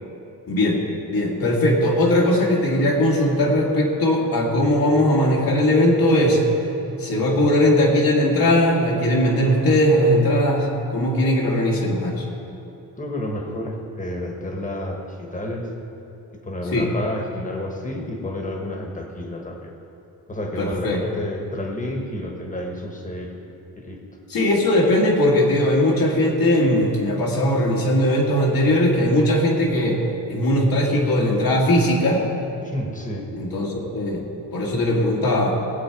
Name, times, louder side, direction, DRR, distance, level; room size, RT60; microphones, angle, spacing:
voice 1, 0.5-0.8 1.1-6.4 7.0-12.2 16.7-16.9 20.6-21.0 24.3-30.0 30.3-32.2 33.3-34.2 34.5-35.6, left 1 dB, 75° left, -2 dB, 2.1 m, -19 dB
voice 2, 7.1-7.5 11.4-11.6 13.0-15.7 16.4-19.7 20.3-23.5 23.7-24.0 32.6-33.3, left 1 dB, 20° left, 2 dB, 1.4 m, -30 dB
16.5 x 8.1 x 4.7 m, 2.8 s
wide cardioid pair, 140°, 35 cm